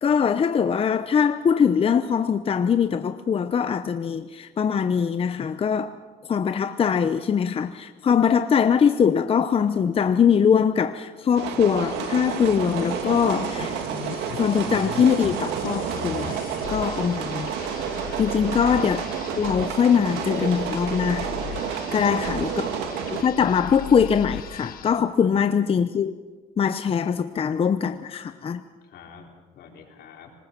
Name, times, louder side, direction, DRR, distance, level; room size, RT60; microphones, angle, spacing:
voice 1, 0.0-5.9 6.3-13.8 14.3-16.4 16.7-17.5 18.2-19.1 19.4-21.3 21.9-22.7 23.1-26.2 26.6-28.6, left 7 dB, 35° left, 0.8 m, -22 dB
sound 1, 11.4-23.2, right 7 dB, 90° right, 2.1 m, -30 dB
sound 2, 11.8-25.0, left 9 dB, 60° left, 1.4 m, -38 dB
voice 2, 22.0-22.6 25.2-25.5 28.8-30.3, left 6 dB, 75° left, 4.3 m, -46 dB
26.5 x 19.5 x 6.0 m
cardioid pair, 110°, 17 cm